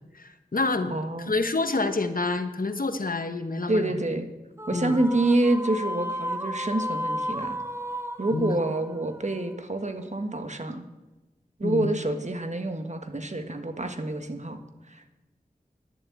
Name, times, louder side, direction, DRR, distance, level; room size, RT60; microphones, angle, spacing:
voice 1, 0.1-1.0 1.3-4.1 4.7-5.0 8.3-8.6 11.6-11.9, left 3 dB, 65° left, 8 dB, 1.1 m, -28 dB
voice 2, 0.9-1.3 3.7-4.3 4.7-7.6 8.2-10.8 11.6-14.6 14.9-15.1, right 2 dB, 50° right, 6 dB, 1.3 m, -27 dB
sound 1, 4.6-10.0, equal, 15° right, 0.8 m, -34 dB
11.0 x 7.4 x 8.5 m, 1.1 s
wide cardioid pair, 50°, 16 cm